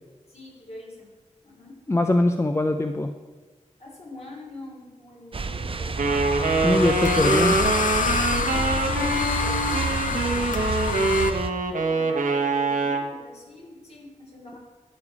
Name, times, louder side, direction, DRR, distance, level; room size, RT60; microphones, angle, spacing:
voice 1, 0.3-1.1 1.4-1.8 3.8-6.1 7.4-7.6 8.3-11.2 11.7-14.6, left 1 dB, 50° left, -2 dB, 3.6 m, -43 dB
voice 2, 1.9-3.1 6.6-7.6, left 2 dB, 20° left, 6 dB, 0.5 m, -22 dB
sound 1, 5.3-11.5, right 4 dB, 45° right, 0.6 m, -30 dB
sound 2, 6.0-11.3, left 5 dB, 80° left, 0.6 m, -27 dB
Wind instrument woodwind instrument, 6.0-13.1, right 3 dB, 80° right, 1.1 m, -25 dB
13.5 x 6.7 x 4.9 m, 1.3 s
wide cardioid pair, 90°, 13 cm